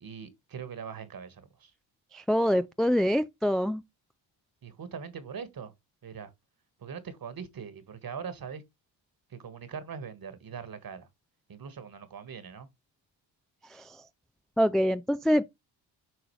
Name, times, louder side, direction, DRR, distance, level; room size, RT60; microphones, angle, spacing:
voice 1, 0.0-1.7 4.6-5.7 6.0-6.3 6.8-8.6 9.3-11.1 11.5-12.7, right 6 dB, 45° right, 1.7 m, -41 dB
voice 2, 2.1-3.8 13.7-14.0 14.6-15.4, equal, ahead, 0.3 m, -25 dB
7.9 x 4.7 x 3.2 m
supercardioid pair, 60°, 47 cm